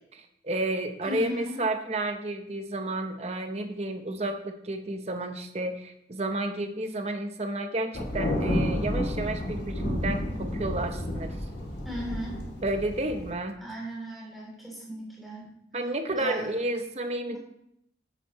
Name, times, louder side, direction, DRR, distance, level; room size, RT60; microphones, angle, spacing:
voice 1, 0.1-11.4 12.6-13.6 15.7-17.4, right 2 dB, 35° right, 6 dB, 0.9 m, -31 dB
voice 2, 1.0-1.6 11.8-12.3 13.6-15.4 16.2-16.5 17.3-17.4, equal, ahead, -5 dB, 3.3 m, -36 dB
Thunder, 7.9-13.3, left 1 dB, 75° left, 2.6 m, -31 dB
9.3 x 8.9 x 3.1 m, 0.75 s
head